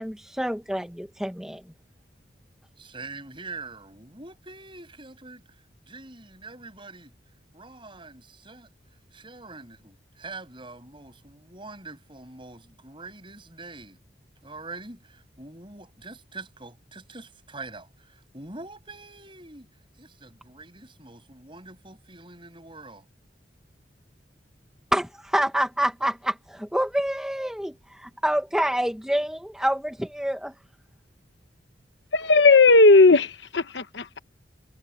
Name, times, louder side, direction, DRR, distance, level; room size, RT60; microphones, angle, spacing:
voice 1, 0.0-1.6 24.9-30.5, right 1 dB, 5° right, 1.3 m, -27 dB
voice 2, 2.8-5.4 5.9-7.1 7.5-8.7 9.1-14.0 14.4-19.7 20.0-23.0, right 3 dB, 30° right, 7.7 m, -44 dB
voice 3, 32.1-34.2, left 3 dB, 75° left, 1.1 m, -16 dB
head